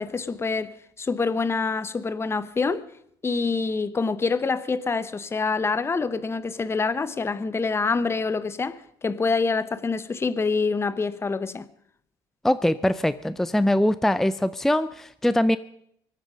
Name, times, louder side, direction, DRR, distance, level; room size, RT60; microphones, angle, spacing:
voice 1, 0.0-2.8 3.2-11.6, left 4 dB, 20° left, 0.8 m, -26 dB
voice 2, 12.4-15.6, left 1 dB, 5° left, 0.4 m, -22 dB
24.0 x 8.5 x 5.1 m
supercardioid pair, 90°, 12 cm